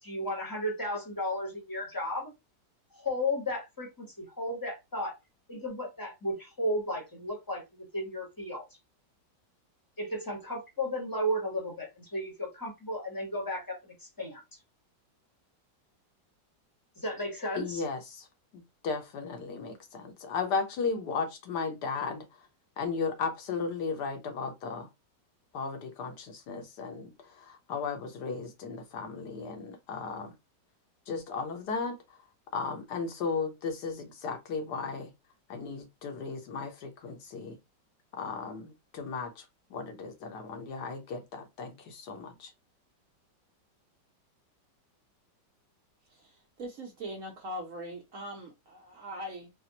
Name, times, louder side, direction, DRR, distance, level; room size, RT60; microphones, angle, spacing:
voice 1, 0.0-2.3 2.9-5.2 5.5-8.6 10.0-14.4 17.0-17.8, left 1 dB, 15° left, 0.8 m, -34 dB
voice 2, 17.6-18.3 18.5-22.3 22.8-24.9 25.5-30.3 31.1-32.2 32.5-35.1 35.5-37.6 38.1-39.4 39.7-42.5, left 5 dB, 70° left, 1.3 m, -35 dB
voice 3, 46.1-49.5, equal, 60° right, 0.9 m, -41 dB
4.1 x 2.0 x 2.8 m
omnidirectional pair, 2.0 m